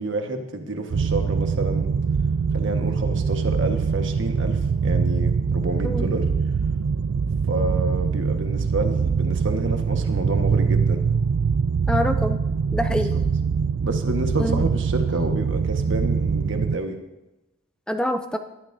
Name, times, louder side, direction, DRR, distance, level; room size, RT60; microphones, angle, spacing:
voice 1, 0.0-1.9 2.5-6.3 7.5-11.0 12.9-13.2 13.8-17.0, right 2 dB, 60° right, 4 dB, 1.4 m, -29 dB
sound 1, 0.9-16.8, right 5 dB, 80° right, 0.4 m, -23 dB
voice 2, 11.9-12.4 12.7-13.2 14.4-14.6 17.9-18.4, equal, 5° left, 7 dB, 0.5 m, -25 dB
19.5 x 12.5 x 2.7 m, 1.0 s
head